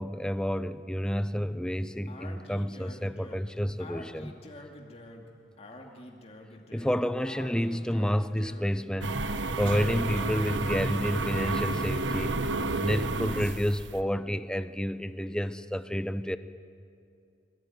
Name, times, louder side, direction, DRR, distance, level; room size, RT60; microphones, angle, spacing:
voice 1, 0.0-4.4 6.7-9.2 9.6-12.4 12.8-16.4, equal, 5° left, 12 dB, 0.7 m, -30 dB
Speech, 2.1-8.8, left 1 dB, 35° left, 2.5 m, -47 dB
sound 1, 9.0-14.0, right 2 dB, 90° right, 1.3 m, -31 dB
23.5 x 22.5 x 9.5 m, 2.5 s
head